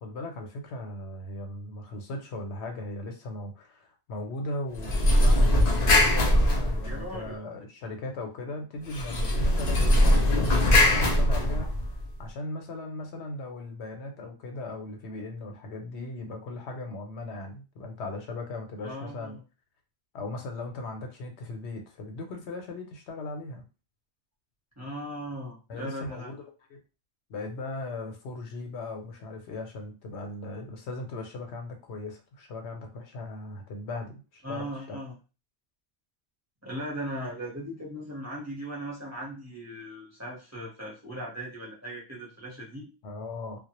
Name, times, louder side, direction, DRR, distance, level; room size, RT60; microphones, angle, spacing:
voice 1, 0.0-19.4 20.1-23.6 25.7-26.8 27.3-35.0 43.0-43.6, left 2 dB, 80° left, 4 dB, 0.9 m, -38 dB
sound 1, 4.7-7.3 8.9-12.1, left 1 dB, 50° left, 0.5 m, -21 dB
voice 2, 6.8-7.4 18.8-19.4 24.8-26.3 34.4-35.1 36.6-42.9, equal, 15° right, -5 dB, 0.7 m, -38 dB
2.1 x 2.0 x 2.9 m, 0.31 s
omnidirectional pair, 1.1 m